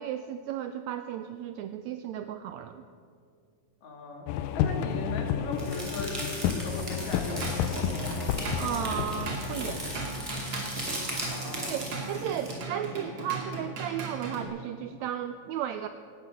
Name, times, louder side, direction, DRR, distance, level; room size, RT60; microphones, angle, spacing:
voice 1, 0.0-2.8 8.6-9.8 11.6-15.9, right 10 dB, 85° right, 9 dB, 1.6 m, -34 dB
voice 2, 3.8-4.3 4.5-7.6 11.3-11.7, left 1 dB, 65° left, 2 dB, 3.2 m, -38 dB
sound 1, 4.3-11.8, left 8 dB, 85° left, 2.2 m, -32 dB
sound 2, 5.6-12.5, right 1 dB, 10° right, 2.8 m, -38 dB
Drum kit / Drum, 7.1-14.5, right 3 dB, 50° right, 3.1 m, -37 dB
18.5 x 9.7 x 6.3 m, 2.3 s
omnidirectional pair, 3.7 m